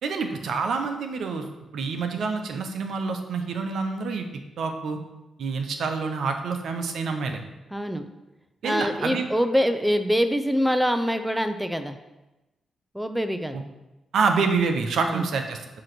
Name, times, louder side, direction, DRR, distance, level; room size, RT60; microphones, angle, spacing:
voice 1, 0.0-1.5 1.7-4.3 4.6-5.0 5.4-7.4 8.6-9.3 13.5-13.6 14.1-15.6, right 4 dB, 75° right, 6 dB, 0.7 m, -27 dB
voice 2, 7.7-8.0 8.6-12.0 12.9-13.6 15.0-15.2, equal, 5° right, 8 dB, 0.6 m, -24 dB
7.5 x 3.0 x 6.0 m, 1.0 s
supercardioid pair, 60°, 0 cm